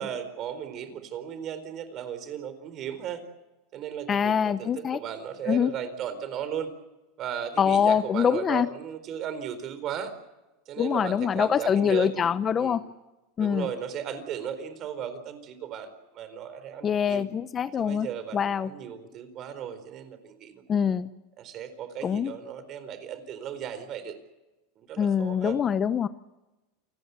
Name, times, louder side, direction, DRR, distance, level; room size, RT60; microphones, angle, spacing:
voice 1, 0.0-3.2 3.7-6.7 7.2-10.1 10.7-12.3 12.6-12.8 13.4-17.3 17.8-20.9 21.4-24.2 24.8-25.6, right 8 dB, 35° right, 12 dB, 4.3 m, -36 dB
voice 2, 4.1-5.0 5.5-5.7 7.6-8.7 10.8-12.8 13.4-13.7 16.8-18.1 18.3-18.7 20.7-21.1 22.0-22.3 25.0-26.1, left 7 dB, 25° left, 14 dB, 0.8 m, -24 dB
29.0 x 19.5 x 8.2 m, 1.0 s
supercardioid pair, 145°, 0 cm